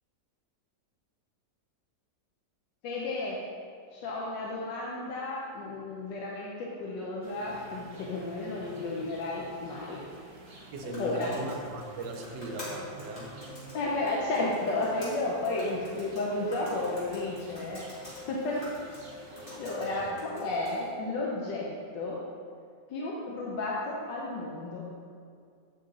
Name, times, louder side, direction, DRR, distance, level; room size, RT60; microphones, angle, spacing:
voice 1, 2.8-3.4 3.9-10.0 10.8-11.4 13.7-17.8 18.3-18.6 18.9-19.1 19.6-21.7 21.9-22.2 22.9-24.9, left 2 dB, 80° left, -4 dB, 1.5 m, -33 dB
sound 1, 7.2-20.1, right 2 dB, 50° right, 1.5 m, -50 dB
sound 2, 10.4-20.9, equal, 30° left, 2.1 m, -49 dB
voice 2, 10.7-13.4 19.8-20.2, right 3 dB, 75° right, 3 dB, 1.4 m, -39 dB
sound 3, 11.6-21.2, left 3 dB, 50° left, 1.2 m, -46 dB
8.5 x 5.5 x 3.8 m, 2.3 s
omnidirectional pair, 1.9 m